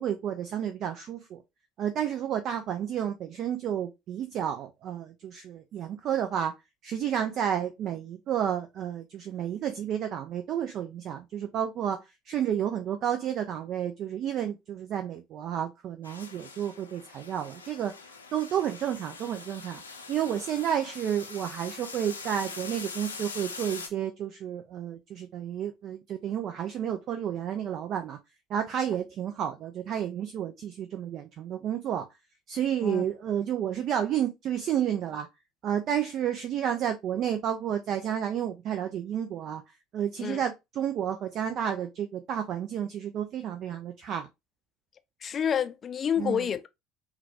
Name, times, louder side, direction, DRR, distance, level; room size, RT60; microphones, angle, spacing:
voice 1, 0.0-1.4 1.8-6.5 6.8-12.0 12.3-17.9 18.3-19.8 20.1-28.2 28.5-32.1 32.5-35.3 35.6-39.6 39.9-44.3 46.2-46.5, right 9 dB, 50° right, 0.5 m, -31 dB
sound 1, 16.0-23.9, left 4 dB, 85° left, 0.6 m, -43 dB
voice 2, 45.2-46.7, left 8 dB, 35° left, 0.5 m, -28 dB
5.7 x 2.3 x 2.8 m
figure-of-eight pair, 65°, 0 cm